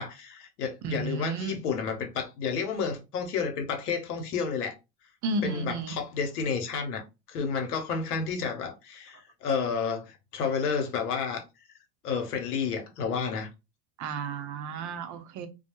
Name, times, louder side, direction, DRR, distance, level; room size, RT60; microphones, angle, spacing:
voice 1, 0.0-4.8 5.4-11.4 12.0-13.5, left 6 dB, 80° left, 0.9 m, -31 dB
voice 2, 0.8-1.6 5.2-6.0 14.0-15.5, right 3 dB, 40° right, 0.6 m, -32 dB
2.3 x 2.1 x 2.9 m
hypercardioid pair, 85°, 45 cm